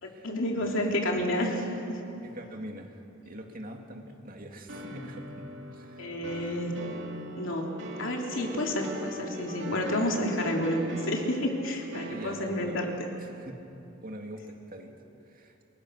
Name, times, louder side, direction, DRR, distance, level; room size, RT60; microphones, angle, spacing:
voice 1, 0.0-2.0 6.0-6.8 7.4-12.9, left 1 dB, 65° left, 0 dB, 3.3 m, -30 dB
voice 2, 0.6-1.0 2.2-5.4 5.7-6.1 12.1-12.8 13.2-13.6 14.0-14.9 15.3-15.6, right 1 dB, 45° right, 3 dB, 2.3 m, -43 dB
sound 1, 4.7-13.0, equal, 60° right, 2.6 m, -41 dB
28.5 x 22.5 x 6.4 m, 2.8 s
head